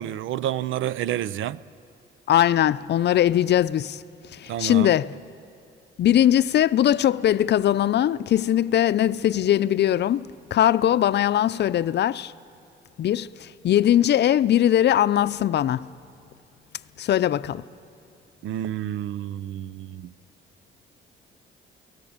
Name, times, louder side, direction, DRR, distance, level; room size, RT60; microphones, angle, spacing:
voice 1, 0.0-1.6 4.5-4.9 18.4-20.1, right 11 dB, 80° right, 0.6 m, -29 dB
voice 2, 2.3-4.0 4.3-5.1 6.0-10.2 10.5-12.3 13.0-15.9 17.0-17.6, left 11 dB, 60° left, 0.6 m, -20 dB
29.5 x 18.0 x 8.8 m
cardioid pair, 90°, 20 cm